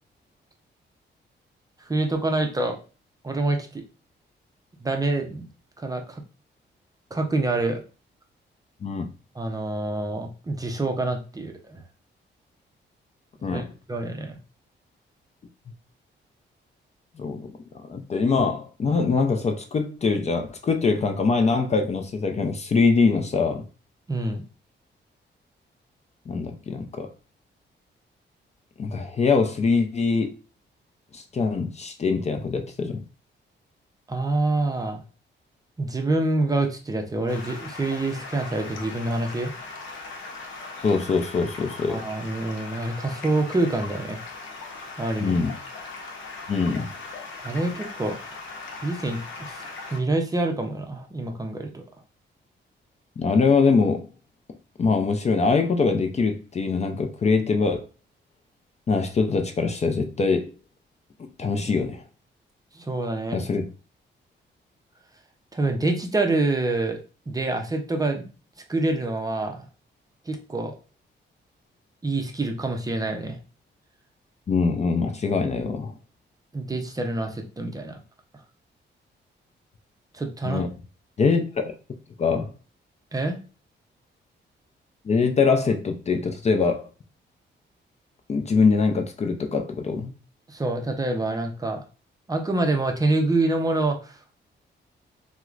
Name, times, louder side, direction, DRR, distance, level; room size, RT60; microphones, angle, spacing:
voice 1, 1.8-2.8 3.2-3.8 4.8-5.5 5.8-6.2 7.1-7.8 9.4-11.8 13.5-14.4 24.1-24.4 34.1-35.0 35.8-39.5 41.9-44.2 45.0-45.4 47.4-48.2 48.8-49.6 49.9-51.8 62.7-63.4 65.5-67.0 67.3-68.3 68.7-69.7 70.3-70.8 72.0-73.4 76.5-78.0 80.1-80.7 83.1-83.4 90.5-91.8 92.3-94.2, right 2 dB, 20° right, 3 dB, 0.5 m, -26 dB
voice 2, 17.2-23.6 26.3-27.1 28.8-30.3 31.1-33.0 40.8-42.0 45.2-45.5 46.5-46.9 53.2-54.1 54.8-57.8 58.9-60.5 61.2-62.0 63.3-63.6 74.5-75.9 80.4-80.7 81.2-81.7 82.2-82.5 85.0-86.9 88.3-90.1, left 4 dB, 35° left, 5 dB, 0.4 m, -23 dB
Stream, 37.3-50.0, left 3 dB, 90° left, 0.7 m, -39 dB
4.4 x 2.1 x 2.4 m, 0.34 s
cardioid pair, 115°, 19 cm